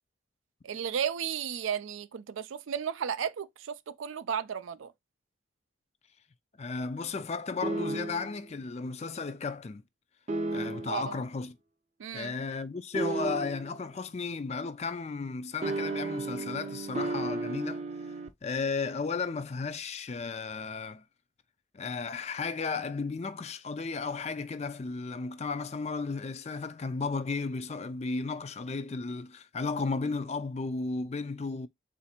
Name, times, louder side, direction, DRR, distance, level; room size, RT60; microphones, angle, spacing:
voice 1, 0.6-4.9 10.9-11.2 12.0-12.3, right 8 dB, 85° right, 0.4 m, -34 dB
voice 2, 6.6-9.8 10.5-11.6 12.1-17.8 18.4-21.0 21.7-31.7, left 4 dB, 35° left, 0.4 m, -34 dB
sound 1, 7.6-8.4 10.3-11.1 12.9-13.8 15.6-18.3, right 2 dB, 35° right, 0.5 m, -33 dB
4.0 x 2.5 x 4.3 m
head